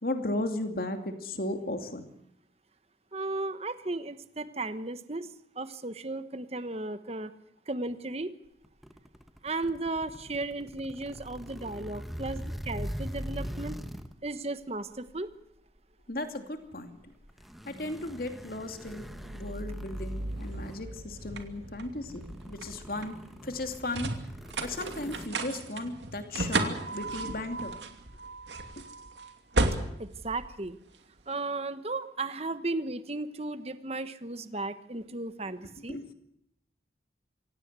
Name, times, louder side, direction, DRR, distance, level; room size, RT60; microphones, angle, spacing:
voice 1, 0.0-2.0 16.1-17.0 17.7-19.1 19.3-23.1 23.4-24.1 24.6-27.7 28.8-28.9 35.9-36.1, left 2 dB, 55° left, 6 dB, 2.7 m, -35 dB
voice 2, 3.1-5.3 5.6-7.3 7.7-8.4 9.4-13.8 14.2-15.3 30.0-30.8 31.3-36.0, right 2 dB, 35° right, 12 dB, 1.2 m, -35 dB
sound 1, 8.6-14.3 15.1-15.3 17.2-21.0 21.6-21.7 22.0-25.3, equal, ahead, 1.2 m, -42 dB
sound 2, 18.8-31.2, right 2 dB, 80° right, 2.7 m, -35 dB
25.5 x 17.5 x 8.2 m, 0.77 s
head